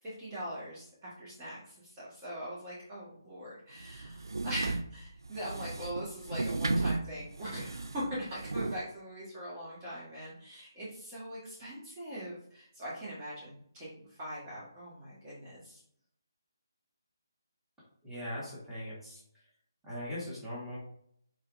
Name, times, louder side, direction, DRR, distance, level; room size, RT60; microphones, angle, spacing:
voice 1, 0.0-15.8, equal, 25° right, -8 dB, 1.5 m, -42 dB
sound 1, 3.8-8.8, right 2 dB, 75° right, 0.4 m, -35 dB
voice 2, 18.0-19.2 19.8-20.8, left 1 dB, 5° right, -9 dB, 1.9 m, -40 dB
4.5 x 4.2 x 2.6 m, 0.68 s
figure-of-eight pair, 150°, 2 cm